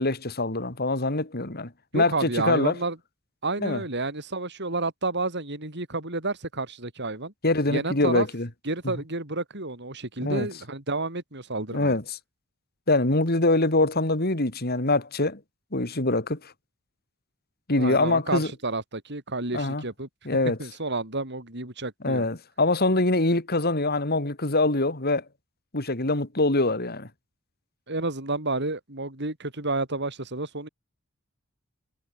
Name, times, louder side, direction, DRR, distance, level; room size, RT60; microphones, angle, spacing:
voice 1, 0.0-2.7 3.6-3.8 7.4-8.5 10.2-10.5 11.7-12.0 12.9-15.4 15.7-16.5 17.7-18.5 19.5-19.8 20.2-20.6 22.0-25.2 25.7-27.1, left 2 dB, 50° left, 3.3 m, -24 dB
voice 2, 1.9-3.0 3.4-7.3 7.7-8.3 8.6-12.0 17.8-20.1 20.6-22.3 27.9-30.7, right 2 dB, 55° right, 5.6 m, -30 dB
head